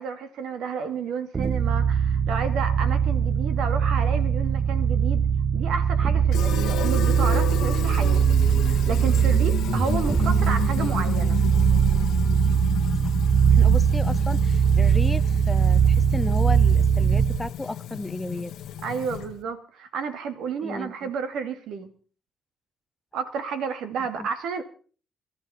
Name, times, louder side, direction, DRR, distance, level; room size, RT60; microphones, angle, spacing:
voice 1, 0.0-5.3 5.5-8.2 8.6-11.4 18.8-21.9 23.1-24.6, right 6 dB, 80° right, 9 dB, 2.2 m, -31 dB
sound 1, 1.3-17.5, right 7 dB, 35° right, 0.7 m, -21 dB
Fill (with liquid), 6.3-19.4, left 10 dB, 80° left, 1.1 m, -33 dB
voice 2, 13.5-18.5 20.6-21.1 24.2-24.3, left 2 dB, 15° left, 15 dB, 0.6 m, -33 dB
22.0 x 12.5 x 4.3 m, 0.41 s
cardioid pair, 90°, 0 cm